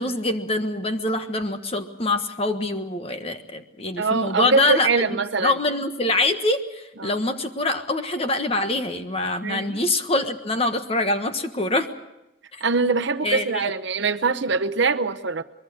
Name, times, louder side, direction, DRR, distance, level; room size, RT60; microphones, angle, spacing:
voice 1, 0.0-11.9 12.5-12.6 13.2-13.7, left 2 dB, 30° left, 1.4 m, -25 dB
voice 2, 4.0-5.5 7.0-7.1 9.4-9.8 12.6-15.4, right 4 dB, 60° right, 0.9 m, -23 dB
23.5 x 22.0 x 6.5 m
head